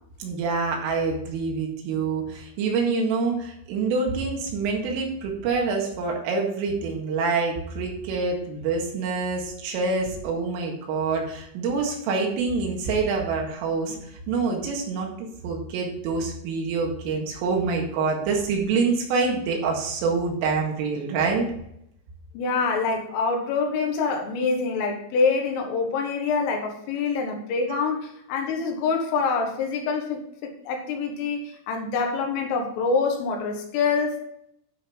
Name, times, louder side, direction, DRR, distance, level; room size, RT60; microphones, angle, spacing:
voice 1, 0.2-14.0 14.3-21.5 27.7-27.8, right 4 dB, 80° right, 0 dB, 4.3 m, -26 dB
voice 2, 22.3-34.2, left 4 dB, 80° left, 3 dB, 4.0 m, -26 dB
12.0 x 5.4 x 3.8 m, 0.75 s
omnidirectional pair, 5.8 m